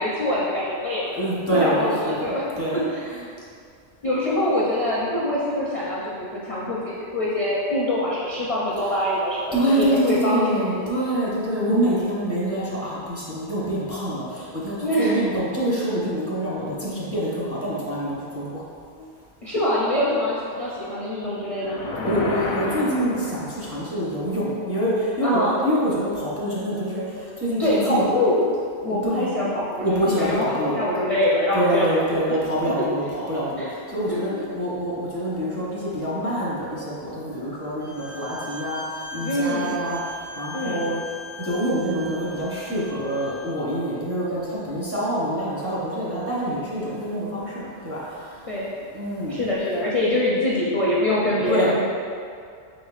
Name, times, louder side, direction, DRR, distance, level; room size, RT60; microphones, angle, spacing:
voice 1, 0.0-1.1 1.5-2.4 2.7-3.0 4.0-10.9 14.8-15.2 18.9-19.1 19.4-21.8 25.2-25.5 27.6-28.5 28.8-32.2 33.6-33.7 34.1-34.2 39.2-39.8 40.5-40.9 48.5-48.7 49.3-51.8, left 1 dB, 45° left, -7 dB, 0.4 m, -24 dB
voice 2, 1.1-2.8 9.5-18.6 22.0-28.1 29.0-29.3 29.8-30.8 31.5-41.0 41.4-48.4 48.9-49.4 51.5-51.7, equal, 15° right, -8 dB, 0.6 m, -26 dB
sound 1, 21.6-23.9, left 2 dB, 85° left, 0.8 m, -30 dB
Bowed string instrument, 37.8-43.6, equal, 55° right, 0.7 m, -38 dB
4.0 x 3.7 x 2.4 m, 2.3 s
omnidirectional pair, 1.1 m